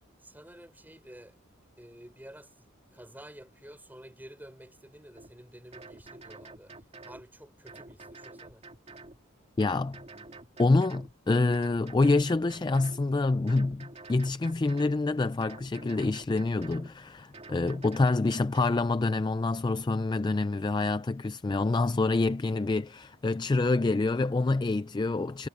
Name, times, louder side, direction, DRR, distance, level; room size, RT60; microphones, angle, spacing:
voice 1, 0.2-1.4 1.8-6.7 7.0-8.6, right 1 dB, 10° right, 6.1 m, -50 dB
sound 1, 5.2-5.3 5.7-7.2 7.7-9.2 9.6-11.1 11.5-13.1 13.5-15.0 15.4-16.9 17.3-18.9, right 3 dB, 30° right, 2.5 m, -48 dB
voice 2, 9.6-10.0 10.6-25.5, left 3 dB, 20° left, 0.3 m, -27 dB
head